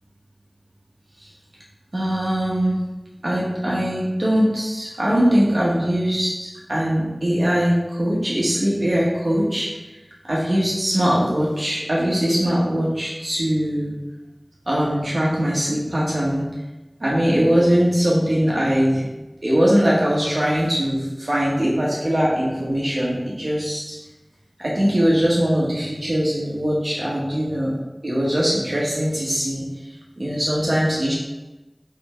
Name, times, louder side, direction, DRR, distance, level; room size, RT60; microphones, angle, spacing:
voice 1, 1.9-2.8 3.2-9.9 10.3-13.9 14.7-16.5 17.0-19.1 19.4-24.0 24.6-27.7 28.0-29.7 30.2-31.1, equal, 70° right, -6 dB, 1.5 m, -21 dB
8.3 x 3.4 x 3.7 m, 1.1 s
wide cardioid pair, 40°, 0 cm